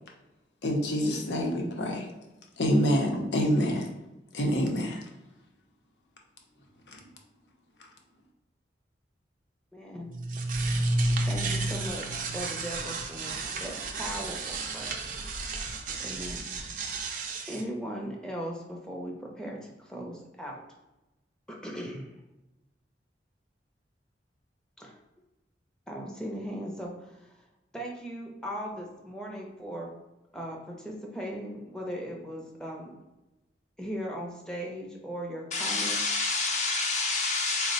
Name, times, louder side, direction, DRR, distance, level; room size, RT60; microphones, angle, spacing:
voice 1, 0.6-2.1 2.6-3.9 4.3-5.0 6.9-7.0, equal, 80° left, 1 dB, 0.7 m, -26 dB
voice 2, 9.7-10.1 11.3-15.0 16.0-16.8 17.5-20.6 21.5-22.2 24.8-25.0 25.9-27.3 27.7-29.9 30.3-33.0 33.8-36.0, equal, 5° left, -2 dB, 0.6 m, -38 dB
sound 1, 10.1-17.6, right 2 dB, 45° right, 0.4 m, -32 dB
voice 3, 35.5-37.7, left 3 dB, 40° left, 0 dB, 0.7 m, -28 dB
4.1 x 2.1 x 3.9 m, 1.0 s
head